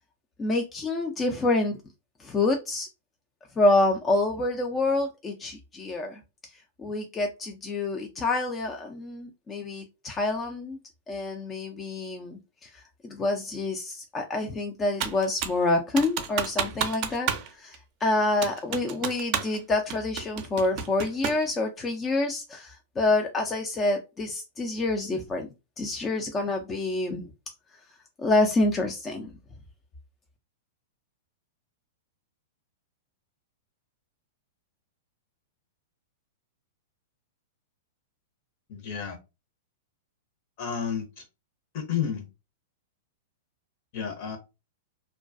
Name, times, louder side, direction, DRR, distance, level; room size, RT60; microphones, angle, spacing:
voice 1, 0.4-1.8 2.2-2.9 3.6-6.2 6.8-10.8 11.1-17.3 17.6-25.5 25.8-27.3 28.2-29.3, left 2 dB, 20° left, 0.4 m, -27 dB
Computer keyboard, 15.0-15.6 16.0-17.5 17.7-17.8 18.4-19.6 19.9-21.5, right 8 dB, 45° right, 0.5 m, -30 dB
voice 2, 38.7-39.2 40.6-41.2 41.7-42.3 43.9-44.4, left 7 dB, 50° left, 0.9 m, -31 dB
2.3 x 2.2 x 2.5 m
hypercardioid pair, 110°, 0 cm